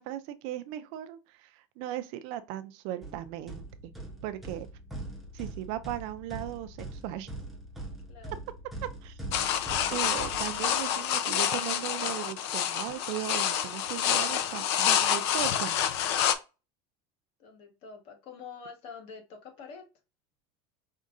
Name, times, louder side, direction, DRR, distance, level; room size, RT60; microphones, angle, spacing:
voice 1, 0.0-3.9 4.2-4.7 5.3-7.3 9.0-9.2 9.9-15.8, right 13 dB, 45° right, 0.4 m, -37 dB
sound 1, 3.0-11.0, right 1 dB, ahead, 0.7 m, -42 dB
sound 2, 9.3-16.3, left 9 dB, 75° left, 0.6 m, -28 dB
voice 2, 17.4-19.9, left 5 dB, 40° left, 1.2 m, -46 dB
5.3 x 3.6 x 2.5 m
cardioid pair, 175°, 14 cm